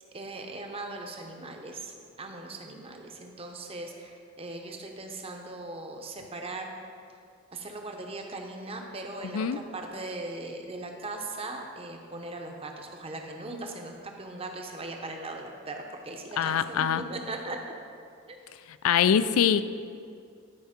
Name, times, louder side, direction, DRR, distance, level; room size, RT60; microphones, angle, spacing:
voice 1, 0.1-6.7 7.5-17.7 18.3-18.4, right 2 dB, 30° right, 3 dB, 0.8 m, -39 dB
voice 2, 16.4-17.0 18.8-19.6, left 8 dB, 90° left, 13 dB, 0.4 m, -23 dB
11.0 x 4.6 x 5.0 m, 2.3 s
head